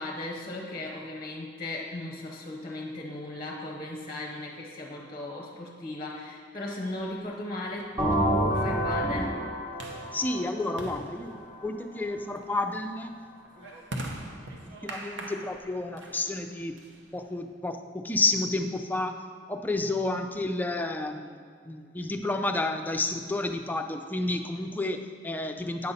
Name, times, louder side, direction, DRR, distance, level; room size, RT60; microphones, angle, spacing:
voice 1, 0.0-9.4, left 1 dB, 25° left, 1 dB, 0.8 m, -37 dB
sound 1, 7.1-17.5, right 1 dB, 70° right, 0.8 m, -44 dB
sound 2, 8.0-11.7, equal, 20° right, 0.9 m, -28 dB
voice 2, 10.1-13.1 13.6-14.3 14.6-16.7 17.1-19.2 19.5-21.4 21.7-25.9, left 2 dB, 10° left, 4 dB, 0.4 m, -31 dB
8.6 x 5.4 x 4.0 m, 2.1 s
head